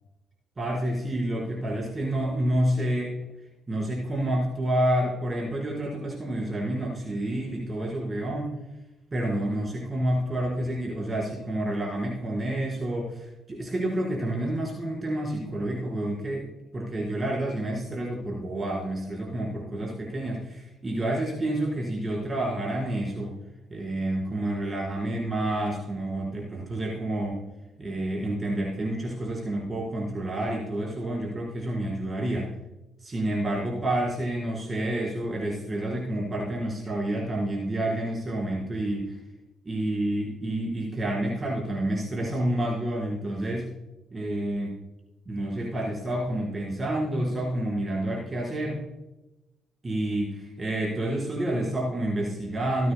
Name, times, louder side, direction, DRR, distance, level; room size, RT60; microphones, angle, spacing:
voice 1, 0.6-3.1 3.7-8.5 9.1-16.5 16.7-23.3 23.7-27.4 27.8-32.5 33.0-39.2 39.6-43.7 44.1-44.8 45.3-48.8 49.8-52.9, right 1 dB, 30° right, -3 dB, 4.3 m, -29 dB
21.0 x 9.3 x 2.2 m, 0.98 s
supercardioid pair, 70°, 0 cm